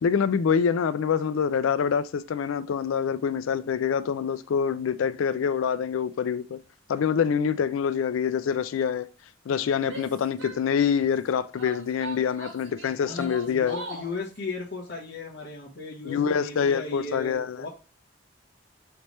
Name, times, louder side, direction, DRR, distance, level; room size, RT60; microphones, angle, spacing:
voice 1, 0.0-6.6 6.9-9.1 9.5-13.8 16.0-17.7, left 7 dB, 85° left, 0.4 m, -25 dB
Female speech woman speaking / Yell, 9.8-11.1 11.6-14.2, right 2 dB, 65° right, 1.3 m, -40 dB
voice 2, 13.0-17.7, left 3 dB, 55° left, 1.2 m, -37 dB
4.1 x 3.3 x 3.1 m
head